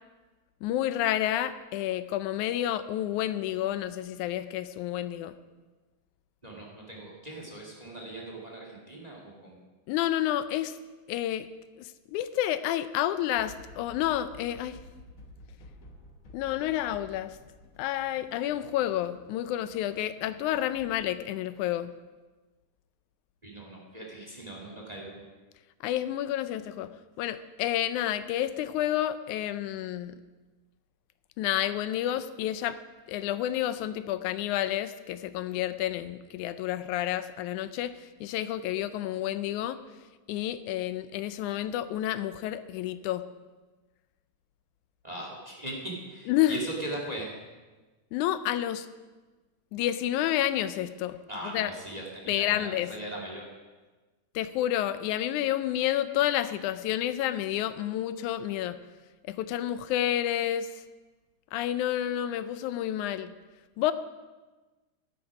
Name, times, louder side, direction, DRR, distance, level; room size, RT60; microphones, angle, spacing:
voice 1, 0.6-5.4 9.9-10.8 11.1-11.5 11.8-14.8 16.3-17.4 17.8-21.9 25.8-26.9 27.2-30.2 31.4-32.8 33.1-39.8 40.3-43.3 46.3-46.6 48.1-48.9 49.7-51.2 51.5-51.7 52.3-52.9 54.4-58.8 59.3-60.7 61.5-63.3 63.8-63.9, left 12 dB, 90° left, 13 dB, 2.1 m, -30 dB
voice 2, 6.4-9.6 23.4-25.2 45.0-47.3 51.3-53.5, right 1 dB, 15° right, -1 dB, 1.9 m, -39 dB
sound 1, 13.4-21.0, left 1 dB, 60° left, 0.8 m, -52 dB
13.5 x 12.0 x 4.9 m, 1.2 s
omnidirectional pair, 3.4 m